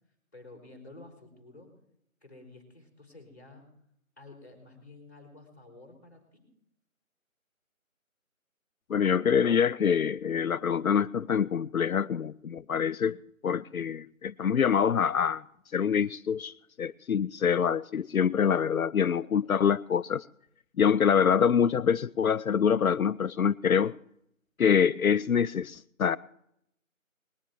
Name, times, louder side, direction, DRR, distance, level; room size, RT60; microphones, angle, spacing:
voice 1, 0.3-1.7 2.2-3.7 4.2-6.4, left 2 dB, 15° left, 3.4 m, -51 dB
voice 2, 8.9-13.2 13.4-15.4 15.7-20.2 20.8-23.9 24.6-26.2, left 7 dB, 80° left, 0.6 m, -25 dB
20.0 x 7.4 x 7.8 m
figure-of-eight pair, 180°, 42 cm